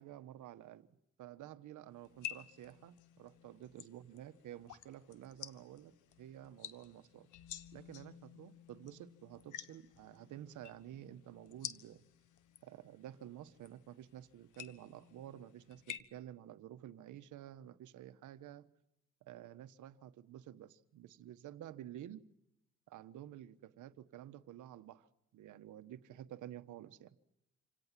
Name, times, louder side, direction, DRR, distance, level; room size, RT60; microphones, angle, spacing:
voice 1, 0.0-7.3 7.7-12.0 12.6-18.7 19.2-22.3 22.9-25.1 25.3-27.2, right 12 dB, 80° right, 1.3 m, -51 dB
sound 1, 2.0-16.0, left 11 dB, 85° left, 1.4 m, -52 dB
27.5 x 18.0 x 7.5 m
cardioid pair, 90°, 30 cm